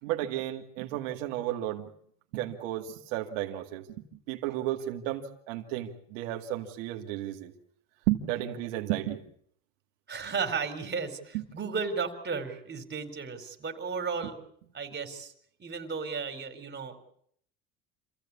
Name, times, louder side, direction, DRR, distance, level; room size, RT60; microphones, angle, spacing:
voice 1, 0.0-1.9 2.3-3.9 4.3-7.5 8.1-9.2 11.3-11.4, right 13 dB, 90° right, 3 dB, 2.2 m, -33 dB
voice 2, 10.1-14.4 14.7-15.3 15.6-17.0, right 5 dB, 25° right, 6 dB, 4.3 m, -34 dB
27.0 x 16.0 x 8.5 m, 0.67 s
supercardioid pair, 110°, 38 cm